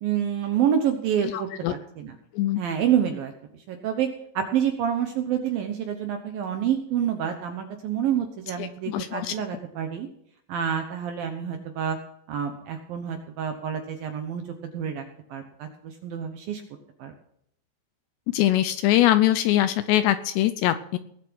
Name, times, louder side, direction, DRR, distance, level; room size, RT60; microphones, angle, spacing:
voice 1, 0.0-2.2 2.6-3.3 3.7-4.1 4.3-10.1 10.5-12.0 12.3-14.4 14.7-15.0 15.3-16.6 17.0-17.1, right 9 dB, 70° right, 5 dB, 2.3 m, -27 dB
voice 2, 1.3-1.7 2.3-2.6 8.6-9.3 18.3-21.0, left 13 dB, 80° left, 11 dB, 2.6 m, -22 dB
20.0 x 7.4 x 6.2 m, 0.70 s
omnidirectional pair, 5.4 m